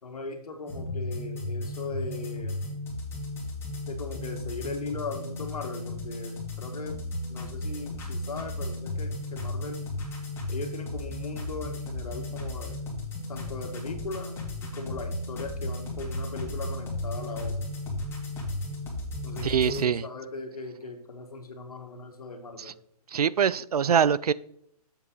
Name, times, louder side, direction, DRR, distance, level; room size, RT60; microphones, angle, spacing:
voice 1, 0.0-2.6 3.9-7.0 7.3-9.8 10.5-12.8 13.3-14.3 14.6-17.6 19.2-22.7, left 3 dB, 70° left, 4 dB, 1.9 m, -38 dB
sound 1, 0.7-19.8, left 1 dB, 10° left, 2.3 m, -35 dB
voice 2, 19.4-20.0 22.6-22.7 23.1-24.3, right 7 dB, 70° right, 19 dB, 0.4 m, -24 dB
8.1 x 7.4 x 3.9 m, 0.72 s
figure-of-eight pair, 130°, 20 cm